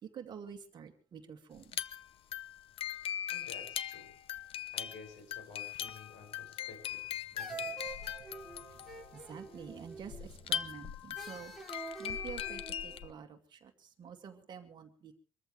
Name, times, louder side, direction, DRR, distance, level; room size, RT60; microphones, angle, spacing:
voice 1, 0.0-1.8 8.2-8.3 8.6-8.8 9.1-11.5 12.0-15.2, right 7 dB, 30° right, 4 dB, 2.2 m, -48 dB
sound 1, 1.6-13.1, left 10 dB, 35° left, 0.6 m, -40 dB
voice 2, 3.3-4.1 4.7-7.1 7.3-7.9, left 4 dB, 90° left, 5 dB, 6.0 m, -52 dB
sound 2, 6.6-7.1 7.4-10.4 11.2-13.0, right 5 dB, ahead, 2.9 m, -47 dB
25.0 x 14.5 x 3.3 m, 0.39 s
cardioid pair, 175°, 16 cm